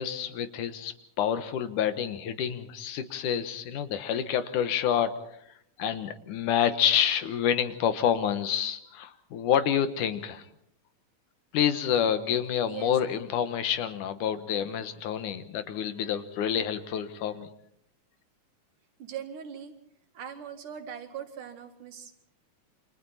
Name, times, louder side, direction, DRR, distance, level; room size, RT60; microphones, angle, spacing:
voice 1, 0.0-5.2 5.8-10.5 11.5-17.5, left 9 dB, 80° left, 10 dB, 2.8 m, -28 dB
voice 2, 19.0-19.7 20.2-22.2, right 8 dB, 85° right, 4 dB, 3.6 m, -40 dB
29.0 x 25.5 x 4.3 m, 0.69 s
omnidirectional pair, 3.5 m